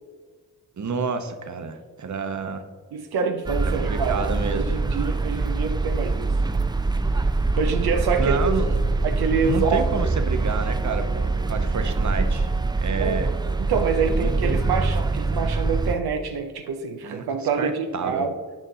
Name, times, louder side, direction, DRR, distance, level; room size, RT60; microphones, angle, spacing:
voice 1, 0.8-2.6 3.6-4.7 8.2-8.6 9.4-12.5 12.8-13.3 14.1-14.7 17.0-18.3, right 5 dB, 50° right, 8 dB, 0.9 m, -29 dB
voice 2, 2.9-6.4 7.6-8.4 9.0-9.9 13.0-13.2 13.6-18.4, right 5 dB, 90° right, 5 dB, 0.6 m, -26 dB
sound 1, 3.5-16.0, right 3 dB, 10° right, 0.4 m, -24 dB
9.3 x 5.4 x 3.8 m, 1.5 s
cardioid pair, 45°, 37 cm